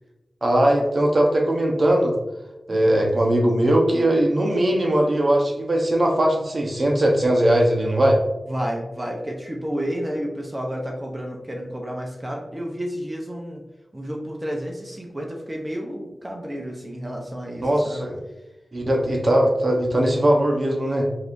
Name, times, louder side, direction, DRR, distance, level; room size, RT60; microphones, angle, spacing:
voice 1, 0.4-2.1 2.7-8.2 17.6-18.2 18.7-21.1, right 1 dB, 55° right, 0 dB, 0.9 m, -20 dB
voice 2, 2.7-3.0 8.5-13.6 13.9-18.0, equal, 25° right, 0 dB, 0.7 m, -31 dB
4.7 x 3.4 x 2.6 m, 1.0 s
wide cardioid pair, 60°, 0 cm